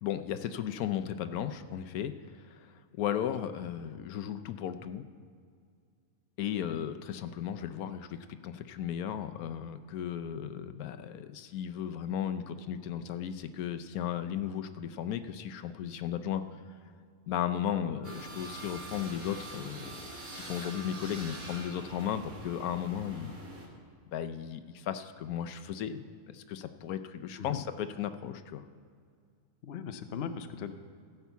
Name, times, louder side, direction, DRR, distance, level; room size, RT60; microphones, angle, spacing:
voice 1, 0.0-2.1 2.5-2.7 3.0-5.0 6.4-16.4 17.3-20.0 20.3-23.3 24.1-28.6, left 9 dB, 85° left, 10 dB, 1.1 m, -35 dB
sound 1, 18.0-23.7, right 2 dB, 75° right, 2.2 m, -44 dB
voice 2, 29.6-30.7, left 7 dB, 55° left, 9 dB, 0.8 m, -38 dB
15.5 x 5.6 x 7.0 m, 2.2 s
omnidirectional pair, 1.5 m